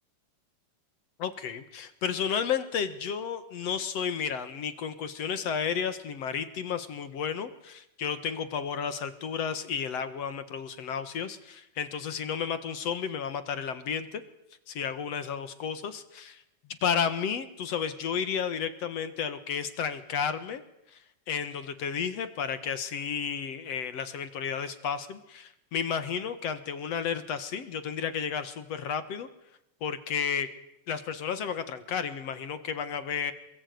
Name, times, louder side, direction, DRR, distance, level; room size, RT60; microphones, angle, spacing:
voice 1, 1.2-14.2 14.7-16.4 16.8-20.6 20.9-21.0 21.3-29.3 29.8-30.5 30.9-33.3, left 7 dB, 55° left, 12 dB, 2.4 m, -32 dB
28.0 x 22.0 x 9.5 m, 0.82 s
omnidirectional pair, 3.7 m